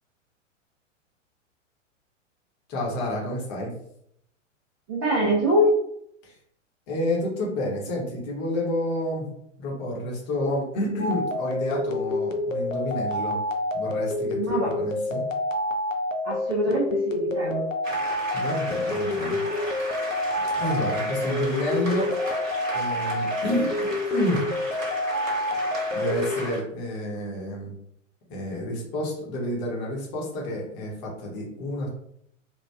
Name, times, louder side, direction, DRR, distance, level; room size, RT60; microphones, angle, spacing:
voice 1, 2.7-3.7 6.2-6.3 6.9-9.3 9.6-13.4 13.7-15.2 18.3-19.4 20.6-22.1 22.7-24.4 25.9-27.7 28.3-31.9, left 1 dB, 35° left, -3 dB, 0.9 m, -29 dB
voice 2, 4.9-5.7 14.4-14.8 16.2-17.7 23.4-23.6, equal, 20° right, -6 dB, 0.4 m, -24 dB
sound 1, 11.0-26.5, left 2 dB, 90° left, 0.5 m, -28 dB
sound 2, 17.8-26.6, right 1 dB, 90° right, 0.9 m, -35 dB
2.9 x 2.2 x 2.2 m, 0.73 s
figure-of-eight pair, 100°, 38 cm